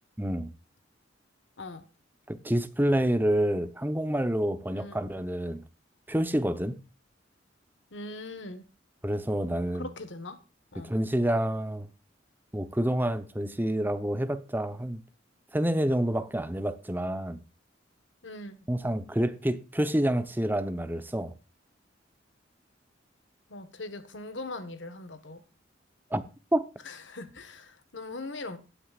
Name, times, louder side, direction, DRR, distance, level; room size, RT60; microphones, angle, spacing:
voice 1, 0.2-0.5 2.3-5.6 6.1-6.8 9.0-9.9 10.8-11.9 12.5-15.0 15.5-17.4 18.7-21.3 26.1-26.2 26.5-26.6, right 1 dB, 10° right, 0.9 m, -28 dB
voice 2, 7.9-8.6 9.7-10.4 10.7-10.9 18.2-18.6 23.5-25.4 26.8-28.6, left 2 dB, 75° left, 1.4 m, -40 dB
16.5 x 9.4 x 2.4 m
head